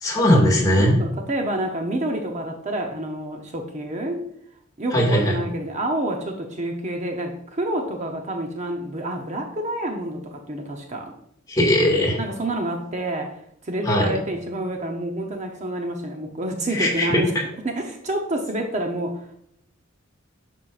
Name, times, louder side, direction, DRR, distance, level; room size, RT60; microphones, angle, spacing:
voice 1, 0.0-1.0 4.9-5.4 11.5-12.2 13.8-14.1 16.7-17.2, left 1 dB, 20° left, -3 dB, 2.1 m, -19 dB
voice 2, 0.8-4.2 4.8-11.1 12.2-13.4 13.6-17.3 17.6-19.4, right 1 dB, 35° right, 3 dB, 0.8 m, -28 dB
9.7 x 6.5 x 2.5 m, 0.74 s
head